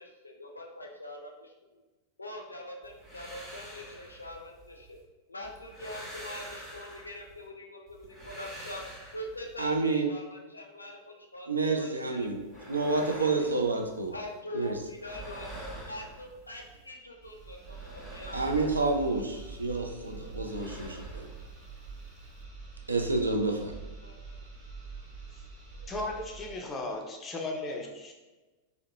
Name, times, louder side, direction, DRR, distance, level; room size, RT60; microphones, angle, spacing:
voice 1, 0.0-1.8 2.2-5.0 5.3-8.8 9.1-12.3 12.6-13.3 14.1-15.5 15.8-18.4 24.0-24.2 25.8-25.9 27.6-27.7, left 1 dB, 80° left, 1 dB, 0.4 m, -43 dB
sound 1, 2.8-5.0 5.4-7.5 7.9-9.8 12.2-14.4 14.6-16.9 17.2-19.8 20.0-22.4, right 1 dB, 10° right, 0.8 m, -47 dB
voice 2, 9.6-10.1 11.5-12.4 12.7-14.1 14.5-14.8 18.3-21.3 22.9-23.8, right 3 dB, 80° right, 3 dB, 0.3 m, -29 dB
sound 2, 17.0-26.7, right 4 dB, 45° right, 0.8 m, -46 dB
voice 3, 25.9-28.1, left 2 dB, 20° left, 2 dB, 0.4 m, -36 dB
2.8 x 2.0 x 2.7 m, 1.2 s
figure-of-eight pair, 90°, 0 cm